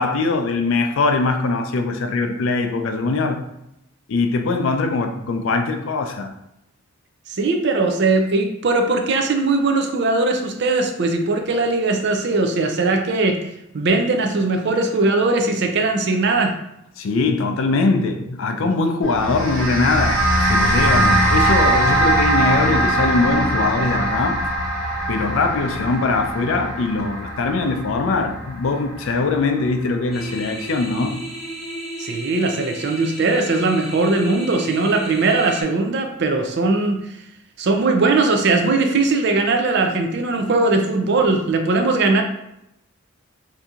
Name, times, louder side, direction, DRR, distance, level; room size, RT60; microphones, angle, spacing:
voice 1, 0.0-3.4 4.1-6.3 17.0-24.4 25.1-31.2, left 3 dB, 65° left, 0.4 m, -21 dB
voice 2, 7.3-13.4 13.7-16.5 32.0-37.2 37.6-42.2, right 3 dB, 55° right, 0.4 m, -19 dB
sound 1, 19.0-29.6, right 1 dB, 90° right, 1.3 m, -21 dB
sound 2, 30.1-35.6, right 1 dB, ahead, 0.6 m, -33 dB
2.8 x 2.6 x 3.6 m
head